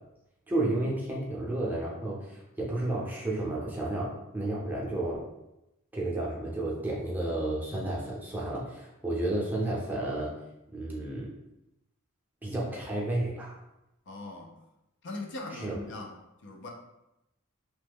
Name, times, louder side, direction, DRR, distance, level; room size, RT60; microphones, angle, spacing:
voice 1, 0.5-5.2 5.9-10.3 10.7-11.3 12.4-13.6 15.6-15.7, right 2 dB, 10° right, -5 dB, 0.6 m, -32 dB
voice 2, 14.1-14.6 15.0-16.7, left 2 dB, 60° left, 1 dB, 0.5 m, -41 dB
3.0 x 2.1 x 3.4 m, 0.90 s
head